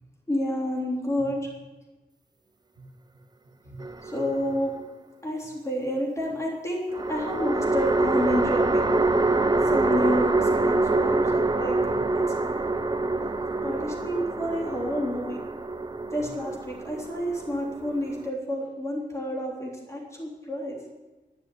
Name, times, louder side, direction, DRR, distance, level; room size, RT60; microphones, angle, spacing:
voice 1, 0.3-1.5 3.6-3.8 4.0-4.7 5.2-8.9 9.7-12.4 13.6-15.4 16.1-20.8, equal, 15° left, -2 dB, 3.4 m, -30 dB
sound 1, 3.8-4.7 6.9-18.3, right 2 dB, 25° right, 0.6 m, -25 dB
12.0 x 9.6 x 9.5 m, 1.2 s
wide cardioid pair, 180°, 18 cm